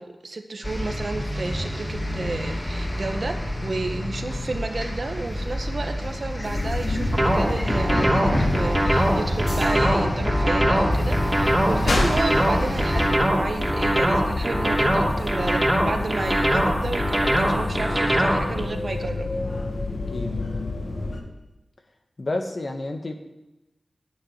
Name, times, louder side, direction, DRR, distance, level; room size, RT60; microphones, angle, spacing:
voice 1, 0.0-19.3, right 3 dB, 60° right, 5 dB, 1.5 m, -31 dB
sound 1, 0.6-13.1, equal, 20° left, 2.8 m, -28 dB
sound 2, 6.4-21.2, left 2 dB, 70° left, 2.3 m, -29 dB
sound 3, 7.1-18.6, right 1 dB, 20° right, 2.9 m, -22 dB
voice 2, 19.9-20.3 22.2-23.1, left 2 dB, 55° left, 5 dB, 1.7 m, -30 dB
9.7 x 9.3 x 9.6 m, 0.99 s
cardioid pair, 55°, 0 cm